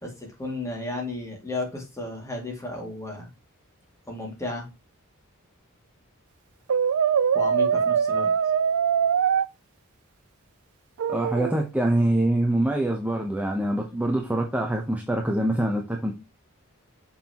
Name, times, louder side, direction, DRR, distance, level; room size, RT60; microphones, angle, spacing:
voice 1, 0.0-3.3 4.1-4.7 7.3-8.3, left 2 dB, 15° left, 1 dB, 2.3 m, -33 dB
Brass instrument, 6.7-9.5 11.0-11.6, right 7 dB, 70° right, 0.4 m, -22 dB
voice 2, 11.1-16.1, right 1 dB, 5° right, 2 dB, 0.8 m, -24 dB
6.7 x 5.6 x 2.9 m, 0.27 s
head